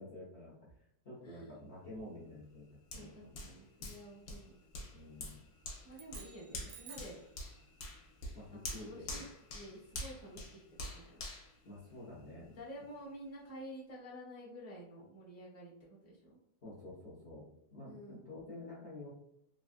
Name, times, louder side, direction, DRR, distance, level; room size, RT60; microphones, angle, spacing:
voice 1, 0.0-2.7 2.9-3.5 4.9-5.4 8.3-9.2 11.6-12.5 16.6-17.4 17.7-19.1, left 2 dB, 50° left, -8 dB, 0.8 m, -49 dB
voice 2, 1.2-1.6 2.9-4.6 5.8-7.2 8.5-9.3 9.5-10.6 10.9-11.2 12.6-16.4 17.8-18.3, equal, 15° left, -4 dB, 0.7 m, -50 dB
Hands, 2.9-12.4 12.9-13.0, left 2 dB, 70° left, 1.1 m, -47 dB
sound 1, 5.9-7.3, right 7 dB, 70° right, 1.0 m, -54 dB
3.3 x 2.4 x 2.5 m, 0.74 s
omnidirectional pair, 1.8 m